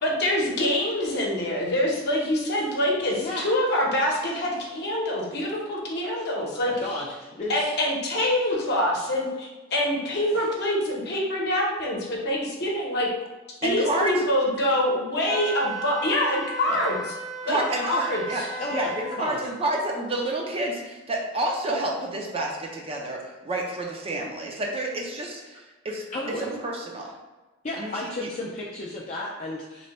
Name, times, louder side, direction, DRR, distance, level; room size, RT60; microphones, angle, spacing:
voice 1, 0.0-6.7 7.5-13.1 13.6-17.1 17.5-18.5, left 1 dB, 55° left, -2 dB, 0.8 m, -25 dB
voice 2, 6.7-7.7 10.2-10.5 18.6-19.4 26.1-26.5 27.6-29.9, left 2 dB, 35° left, -4 dB, 0.4 m, -33 dB
voice 3, 13.6-14.2 16.7-16.8 17.4-18.4 18.7-26.0 26.4-27.1 27.8-28.1, right 1 dB, 30° right, 0 dB, 0.5 m, -29 dB
Wind instrument woodwind instrument, 15.3-19.2, right 2 dB, 60° right, 1.2 m, -35 dB
3.1 x 2.2 x 4.0 m, 1.2 s
head